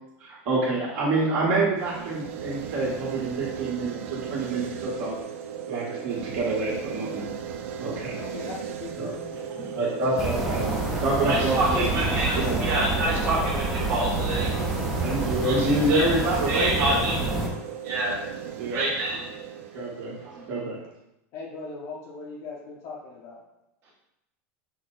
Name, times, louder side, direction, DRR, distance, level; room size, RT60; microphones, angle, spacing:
voice 1, 0.2-5.1 5.7-7.3 7.8-8.2 9.0-9.1 9.7-10.7 11.0-11.9 12.4-12.7 15.0-17.0 18.6-18.8 19.7-20.2 20.5-20.8, right 2 dB, 55° right, -6 dB, 1.4 m, -27 dB
sound 1, 1.8-20.8, right 7 dB, 80° right, 0.4 m, -36 dB
voice 2, 8.2-9.2 21.3-23.4, left 3 dB, 40° left, -2 dB, 0.7 m, -39 dB
voice 3, 9.5-9.9 10.6-15.1 15.3-17.6 17.8-18.2 18.7-19.4 20.2-20.5, right 2 dB, 35° right, -8 dB, 1.6 m, -28 dB
sound 2, 10.2-17.5, right 2 dB, ahead, 0.6 m, -28 dB
5.9 x 2.1 x 3.8 m, 0.86 s
supercardioid pair, 160°, 7 cm